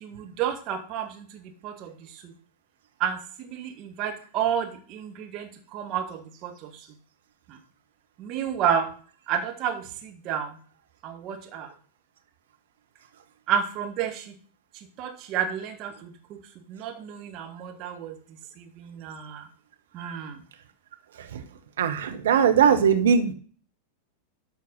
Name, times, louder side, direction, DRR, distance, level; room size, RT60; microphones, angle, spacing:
voice 1, 0.0-2.3 3.0-6.9 7.5-7.6 8.2-8.9 9.3-10.6 11.0-11.7 13.5-14.4 14.7-16.4 16.7-18.2 18.6-19.5 19.9-20.4, right 8 dB, 40° right, 4 dB, 1.8 m, -31 dB
voice 2, 21.8-23.3, right 7 dB, 60° right, 6 dB, 1.2 m, -20 dB
12.5 x 4.5 x 5.6 m, 0.42 s
figure-of-eight pair, 90°, 0 cm